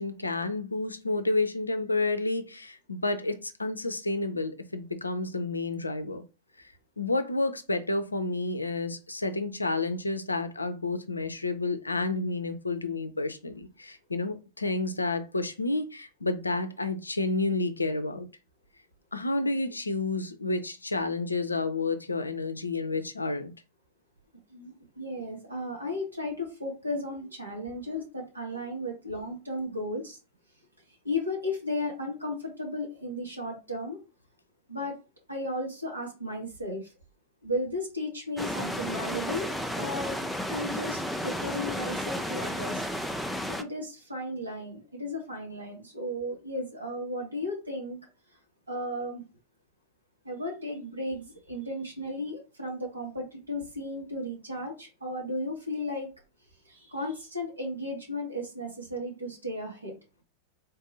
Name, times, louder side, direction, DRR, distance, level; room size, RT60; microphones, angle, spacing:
voice 1, 0.0-6.2 6.6-18.3 19.1-23.5, left 2 dB, 80° left, 0.5 m, -30 dB
voice 2, 24.5-30.2 31.0-34.0 34.7-34.9 35.3-36.9 37.4-40.2 40.5-42.8 43.5-48.0 48.7-49.2 50.2-56.1 56.6-60.0, left 1 dB, 80° right, 1.7 m, -35 dB
sound 1, 38.4-43.6, equal, ahead, 0.5 m, -33 dB
3.9 x 2.6 x 3.9 m
figure-of-eight pair, 90°, 0 cm